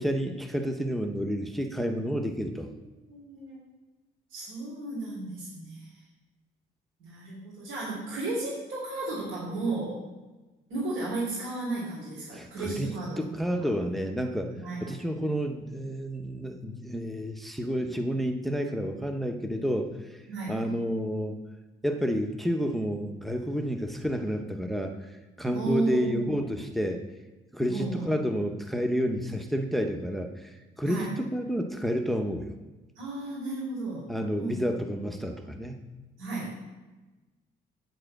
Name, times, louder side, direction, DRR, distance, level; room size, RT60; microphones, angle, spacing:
voice 1, 0.0-2.7 12.3-12.9 13.2-14.5 14.8-20.2 20.5-21.4 21.8-27.0 27.5-32.5 34.1-35.8, equal, ahead, 5 dB, 0.8 m, -30 dB
voice 2, 3.1-3.6 4.3-5.9 7.0-10.0 10.7-13.5 14.6-14.9 20.3-20.6 25.5-26.3 27.7-28.1 30.8-31.1 32.9-34.0 34.4-34.6 36.2-36.6, right 3 dB, 75° right, -6 dB, 3.4 m, -33 dB
8.9 x 4.8 x 7.5 m, 1.1 s
cardioid pair, 90°, 20 cm